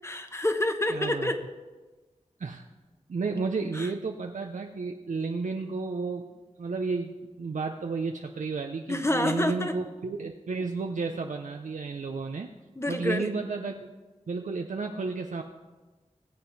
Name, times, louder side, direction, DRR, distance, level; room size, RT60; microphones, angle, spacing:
voice 1, 0.0-1.4 3.7-3.9 8.9-9.7 12.8-13.3, left 1 dB, 20° left, 7 dB, 1.1 m, -28 dB
voice 2, 0.9-1.3 2.4-2.7 3.1-12.5 12.9-13.9 14.3-15.4, right 4 dB, 80° right, 4 dB, 0.6 m, -32 dB
19.5 x 7.6 x 4.0 m, 1.2 s
wide cardioid pair, 50°, 13 cm